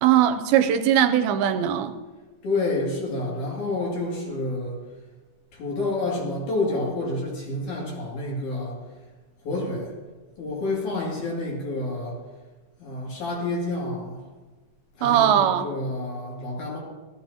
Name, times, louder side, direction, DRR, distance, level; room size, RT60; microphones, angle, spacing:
voice 1, 0.0-1.9 15.0-15.7, right 10 dB, 90° right, 8 dB, 2.5 m, -20 dB
voice 2, 2.4-4.8 5.5-8.8 9.4-9.9 10.4-12.2 12.8-14.2 15.0-16.8, left 2 dB, 55° left, -3 dB, 3.8 m, -29 dB
17.0 x 13.5 x 2.8 m, 1.3 s
omnidirectional pair, 4.2 m